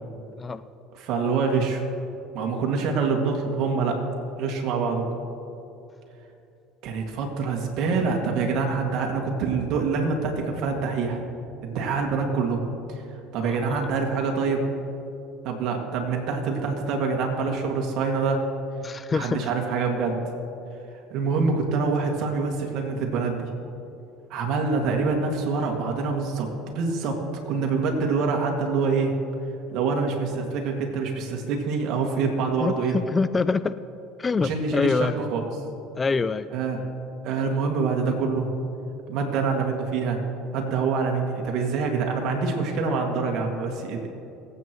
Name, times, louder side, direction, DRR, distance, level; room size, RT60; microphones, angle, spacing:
voice 1, 0.9-1.9 2.3-4.0 4.4-5.1 6.8-11.3 11.6-12.6 13.3-14.6 15.4-18.4 19.1-20.2 21.1-23.5 24.3-27.2 27.4-29.1 29.7-33.0 34.4-35.4 36.5-36.8 37.2-38.5 39.1-40.2 40.5-44.1, right 4 dB, 65° right, 2 dB, 2.2 m, -25 dB
voice 2, 13.4-13.8 18.8-19.5 32.6-33.8 34.2-35.1 36.0-36.5, left 4 dB, 25° left, 14 dB, 0.4 m, -25 dB
23.5 x 8.6 x 3.1 m, 2.8 s
supercardioid pair, 90°, 0 cm